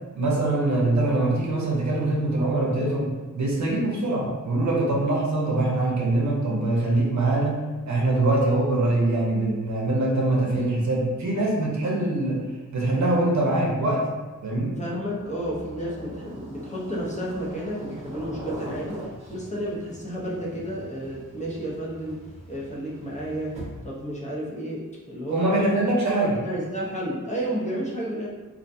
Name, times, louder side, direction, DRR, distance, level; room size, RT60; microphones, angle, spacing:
voice 1, 0.1-12.4 12.7-14.1 14.4-14.8 25.3-26.4, right 2 dB, 60° right, -2 dB, 0.6 m, -23 dB
voice 2, 14.7-22.2 22.5-23.6 23.8-25.8 26.2-28.3, right 1 dB, 20° left, -6 dB, 0.6 m, -31 dB
sound 1, 14.9-24.1, equal, 20° right, 0.8 m, -41 dB
2.4 x 2.1 x 2.6 m, 1.2 s
cardioid pair, 70°, 33 cm